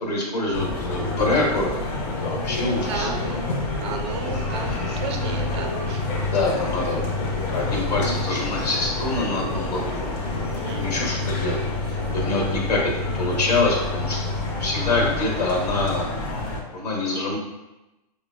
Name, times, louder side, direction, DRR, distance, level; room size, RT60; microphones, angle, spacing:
voice 1, 0.0-1.9 2.2-3.1 6.2-7.1 7.5-10.2 10.6-11.6 11.9-16.2 16.7-17.4, left 2 dB, 80° left, -1 dB, 1.0 m, -25 dB
sound 1, 0.5-16.6, left 2 dB, 25° left, 0.4 m, -28 dB
voice 2, 2.9-3.5 3.8-6.1 10.5-10.8, right 4 dB, 45° right, 3 dB, 0.4 m, -33 dB
sound 2, 4.1-11.8, left 4 dB, 65° left, 0.8 m, -38 dB
3.9 x 2.0 x 2.2 m, 1.0 s
hypercardioid pair, 145°, 20 cm